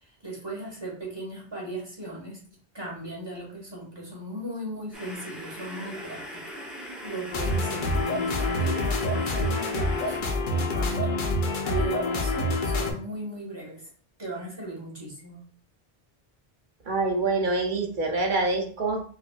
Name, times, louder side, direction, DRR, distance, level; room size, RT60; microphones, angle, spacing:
voice 1, 0.0-2.4 2.7-11.2 11.6-13.9 14.2-15.4, right 2 dB, 25° right, -4 dB, 1.4 m, -37 dB
sound 1, 4.9-10.2, equal, ahead, 0.6 m, -40 dB
sound 2, 7.3-12.9, left 2 dB, 60° left, 0.8 m, -26 dB
voice 2, 16.9-19.0, right 3 dB, 55° right, 2 dB, 0.9 m, -26 dB
4.7 x 2.6 x 2.3 m, 0.43 s
omnidirectional pair, 1.0 m